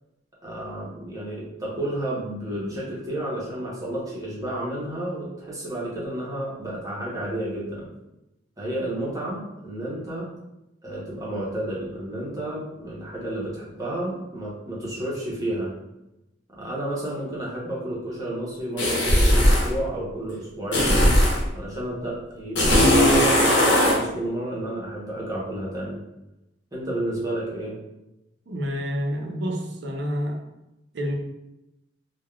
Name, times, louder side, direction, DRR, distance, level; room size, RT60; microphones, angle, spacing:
voice 1, 0.4-7.9 8.6-10.3 10.8-15.7 16.6-21.0 21.5-26.0 26.7-27.8, right 1 dB, 20° right, -6 dB, 0.8 m, -31 dB
sound 1, 18.8-19.7 20.7-21.4 22.6-24.0, left 1 dB, 80° left, 0.8 m, -18 dB
voice 2, 28.5-30.4 30.9-31.1, equal, 65° right, 2 dB, 0.5 m, -28 dB
3.4 x 2.2 x 2.3 m, 0.92 s
head